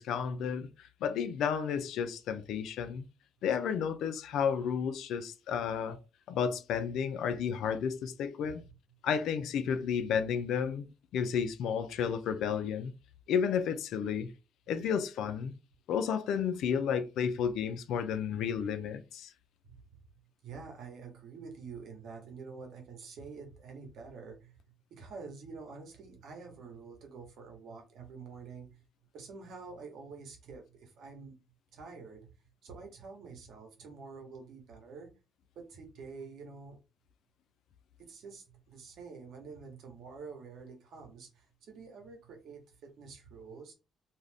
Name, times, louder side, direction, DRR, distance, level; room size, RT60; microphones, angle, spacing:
voice 1, 0.0-3.1 3.4-6.0 6.3-8.6 9.0-12.9 13.3-14.3 14.7-15.5 15.9-19.3, left 7 dB, 80° left, 0.4 m, -32 dB
voice 2, 8.5-8.8 19.6-19.8 20.4-24.6 24.9-28.8 29.1-31.4 31.7-32.3 32.6-35.1 35.5-36.8 38.0-43.7, right 5 dB, 75° right, 1.1 m, -48 dB
2.5 x 2.4 x 3.3 m
cardioid pair, 90°, 0 cm